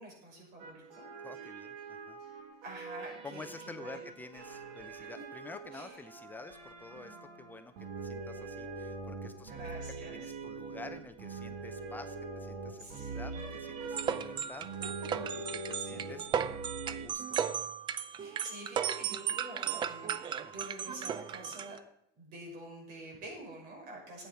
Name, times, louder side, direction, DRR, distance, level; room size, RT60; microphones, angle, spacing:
voice 1, 0.0-1.0 2.6-4.0 5.0-5.1 5.7-6.0 9.4-10.3 12.8-13.6 15.7-16.4 18.1-21.8 22.2-24.3, right 1 dB, 60° right, -1 dB, 6.2 m, -48 dB
sound 1, 0.6-17.1, right 4 dB, 75° right, 2.4 m, -43 dB
voice 2, 1.2-2.2 3.2-9.7 10.1-14.7 14.9-16.3 16.9-17.4 20.4-20.7, left 3 dB, 10° left, 8 dB, 0.6 m, -49 dB
sound 2, 13.9-21.8, right 8 dB, 30° right, 0.5 m, -35 dB
13.0 x 8.8 x 5.7 m, 0.75 s
cardioid pair, 150°, 15 cm